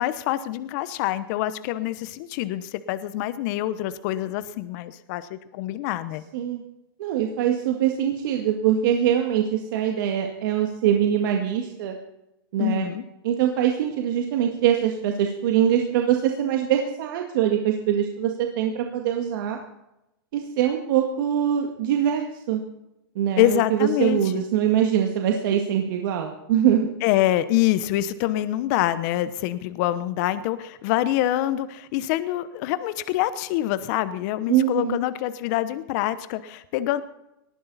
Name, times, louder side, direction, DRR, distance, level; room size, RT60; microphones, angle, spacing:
voice 1, 0.0-6.2 12.6-13.0 23.4-24.4 27.0-37.0, left 14 dB, 45° left, 13 dB, 0.9 m, -25 dB
voice 2, 7.0-12.0 12.5-12.9 13.2-19.6 20.3-22.6 23.2-26.9 34.5-35.0, right 10 dB, 60° right, 3 dB, 1.9 m, -23 dB
19.5 x 14.5 x 4.2 m, 0.90 s
hypercardioid pair, 140°, 12 cm